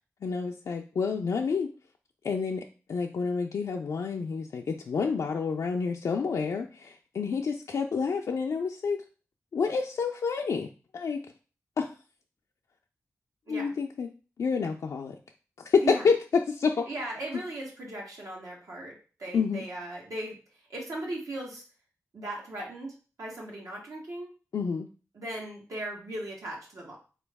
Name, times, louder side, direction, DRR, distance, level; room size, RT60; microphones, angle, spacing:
voice 1, 0.2-1.7 2.2-9.0 9.5-11.2 11.8-11.9 13.5-14.1 14.4-15.2 15.6-16.9 19.3-19.6 24.5-24.9, left 5 dB, 75° left, 1 dB, 0.4 m, -28 dB
voice 2, 16.9-20.4 20.7-21.6 22.1-24.3 25.1-27.0, right 1 dB, 75° right, -2 dB, 1.5 m, -38 dB
3.9 x 3.0 x 3.5 m, 0.36 s
wide cardioid pair, 75°, 6 cm